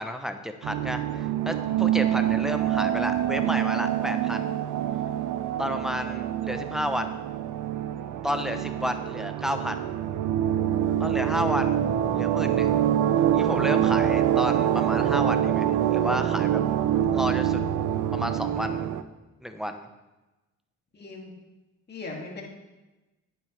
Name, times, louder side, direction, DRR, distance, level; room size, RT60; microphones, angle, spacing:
voice 1, 0.0-4.5 5.6-7.1 8.2-9.8 11.0-11.8 12.1-12.7 13.3-16.6 17.1-17.6 18.1-18.9 19.4-19.9, equal, ahead, 6 dB, 0.7 m, -31 dB
sound 1, 0.6-19.0, right 10 dB, 80° right, 0.6 m, -25 dB
voice 2, 20.9-21.3 21.9-22.4, left 3 dB, 35° left, -2 dB, 2.4 m, -38 dB
9.5 x 7.6 x 3.3 m, 1.1 s
cardioid pair, 90°, 30 cm